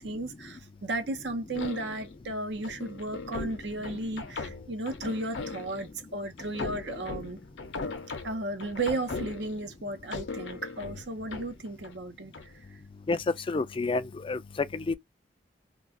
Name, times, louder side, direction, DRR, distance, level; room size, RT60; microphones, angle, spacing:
voice 1, 0.0-7.4 8.2-12.5, right 2 dB, 70° right, 0.8 m, -34 dB
sound 1, 1.5-2.1 2.6-5.9 6.4-9.7 10.1-12.0 12.3-12.6, left 3 dB, 85° left, 0.6 m, -39 dB
voice 2, 13.1-14.4 14.7-14.9, left 3 dB, 30° left, 0.4 m, -29 dB
2.4 x 2.3 x 3.6 m
head